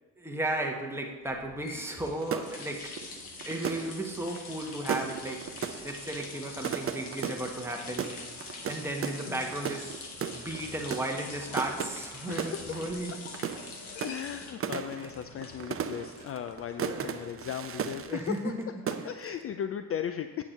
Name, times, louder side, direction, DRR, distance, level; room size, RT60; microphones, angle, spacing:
voice 1, 0.2-3.0 3.4-5.5 5.8-8.2 8.7-10.1 10.3-13.3 16.9-17.1 18.1-18.7, right 1 dB, 5° right, 1 dB, 1.4 m, -35 dB
sound 1, 1.4-18.3, left 4 dB, 80° left, 1.2 m, -45 dB
sound 2, 2.2-18.6 18.9-19.4, right 8 dB, 30° right, 0.6 m, -37 dB
voice 2, 12.3-12.8 13.9-18.5 19.0-20.4, left 9 dB, 35° left, 9 dB, 0.4 m, -36 dB
8.5 x 4.7 x 6.5 m, 1.2 s
figure-of-eight pair, 45°, 44 cm